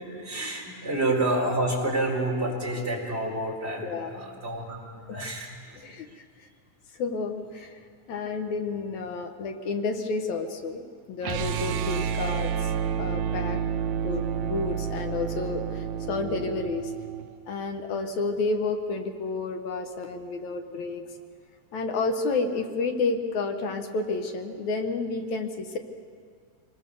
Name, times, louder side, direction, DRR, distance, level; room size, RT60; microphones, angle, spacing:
voice 1, 0.0-5.8 15.4-15.5 20.7-20.8, right 1 dB, 15° right, -3 dB, 4.3 m, -29 dB
voice 2, 3.8-4.2 5.1-5.2 5.8-6.5 7.0-7.8 8.1-12.7 13.0-13.6 14.0-16.9 17.5-21.0 21.7-25.8, left 3 dB, 65° left, 5 dB, 2.1 m, -30 dB
sound 1, 11.2-17.3, right 8 dB, 80° right, 1.7 m, -30 dB
24.5 x 20.5 x 7.0 m, 2.2 s
omnidirectional pair, 4.3 m